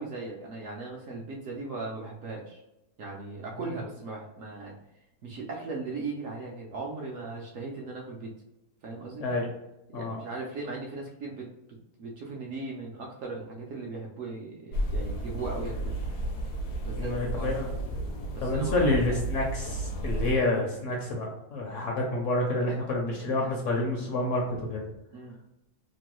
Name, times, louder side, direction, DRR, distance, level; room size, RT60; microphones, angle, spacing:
voice 1, 0.0-2.6 3.0-4.8 5.2-8.3 8.8-9.3 9.9-15.9 16.8-17.6 18.3-19.2 25.1-25.4, right 3 dB, 70° right, -1 dB, 0.8 m, -38 dB
sound 1, 14.7-20.3, right 1 dB, 85° left, 1.2 m, -32 dB
voice 2, 17.0-17.7 18.4-24.8, left 2 dB, 65° left, 0 dB, 0.8 m, -28 dB
3.0 x 2.2 x 2.9 m, 0.92 s
omnidirectional pair, 1.7 m